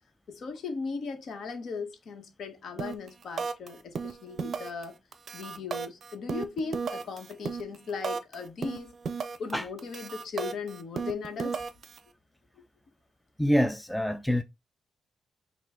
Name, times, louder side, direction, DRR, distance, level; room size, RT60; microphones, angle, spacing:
voice 1, 0.3-4.9 5.3-9.0 9.4-11.6, left 4 dB, 60° left, 1.3 m, -37 dB
sound 1, 2.8-3.1 3.4-3.7 4.0-4.8 5.1-8.3 8.6-9.5 9.8-12.0, right 5 dB, 50° right, 0.5 m, -34 dB
voice 2, 13.4-14.4, equal, 5° left, 0.3 m, -25 dB
5.7 x 2.5 x 3.6 m
cardioid pair, 130°, 0 cm